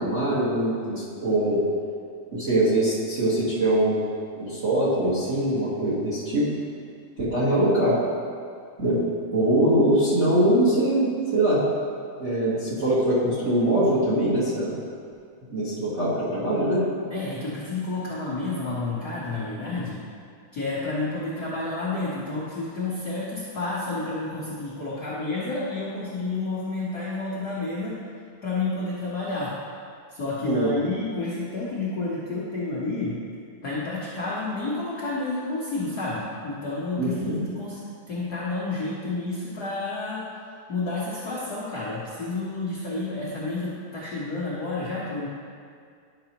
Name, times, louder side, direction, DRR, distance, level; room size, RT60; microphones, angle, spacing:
voice 1, 0.0-1.6 2.3-4.0 4.4-6.5 7.2-8.0 8.8-9.0 9.3-11.6 12.2-14.8 15.5-16.9 30.4-30.7 37.0-37.4, right 1 dB, 35° right, -10 dB, 1.2 m, -22 dB
voice 2, 17.1-20.0 20.5-28.0 28.4-29.5 30.1-33.2 33.6-37.8 38.1-40.2 40.7-45.3, left 3 dB, 60° left, -8 dB, 1.0 m, -30 dB
11.0 x 6.0 x 2.9 m, 2.2 s
omnidirectional pair, 3.5 m